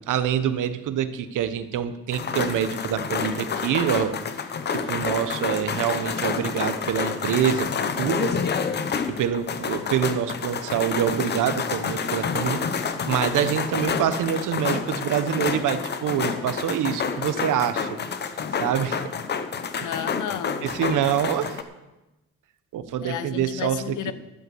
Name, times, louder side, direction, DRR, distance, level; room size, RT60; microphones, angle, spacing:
voice 1, 0.1-4.2 4.7-7.7 8.0-8.4 9.1-12.6 13.1-18.0 18.6-19.0 19.8-19.9 20.6-21.6 22.7-24.1, right 9 dB, 85° right, 1.0 m, -26 dB
sound 1, 2.1-21.6, left 6 dB, 35° left, 0.8 m, -28 dB
voice 2, 19.8-20.7 23.0-24.1, left 10 dB, 80° left, 0.9 m, -32 dB
12.0 x 8.3 x 7.8 m
cardioid pair, 175°, 30 cm